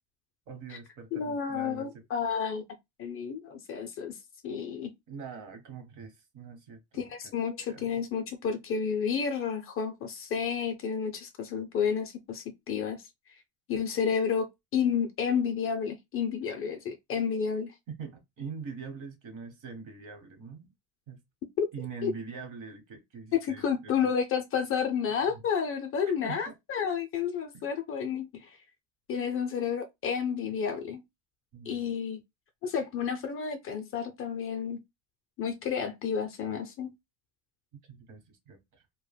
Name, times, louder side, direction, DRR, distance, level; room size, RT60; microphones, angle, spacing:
voice 1, 0.5-1.9 5.1-7.3 7.7-7.9 17.9-20.7 21.1-21.2 21.7-24.1 25.3-25.4 26.1-26.5 27.5-27.7 31.5-31.9 37.7-38.8, right 5 dB, 50° right, 1.0 m, -43 dB
voice 2, 1.1-2.6 3.0-4.2 4.4-4.9 6.9-13.0 13.7-17.7 21.6-21.7 22.0-22.1 23.3-28.5 29.1-31.0 31.7-32.2 32.6-34.8 35.4-36.9, left 7 dB, 35° left, 0.4 m, -31 dB
3.2 x 2.1 x 2.2 m
cardioid pair, 135°, 39 cm